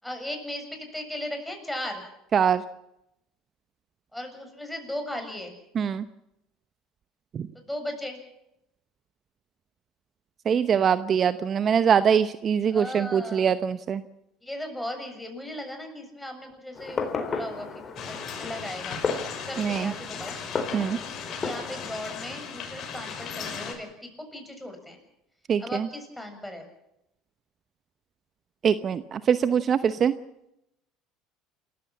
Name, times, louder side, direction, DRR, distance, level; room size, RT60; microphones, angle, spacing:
voice 1, 0.0-2.0 4.1-5.5 7.6-8.2 12.7-13.5 14.4-19.0 19.5-20.4 21.4-25.0 25.6-26.7, left 1 dB, 5° left, 5 dB, 7.1 m, -37 dB
voice 2, 2.3-2.6 5.7-6.0 7.3-7.5 10.5-14.0 19.6-19.9 20.7-21.0 25.5-25.9 28.6-30.1, right 7 dB, 40° right, 13 dB, 0.8 m, -23 dB
Fireworks, 16.7-22.0, left 4 dB, 35° left, 4.3 m, -34 dB
sound 1, 18.0-23.7, left 6 dB, 50° left, 5.8 m, -37 dB
28.0 x 15.0 x 7.5 m, 0.85 s
hypercardioid pair, 75°, 0 cm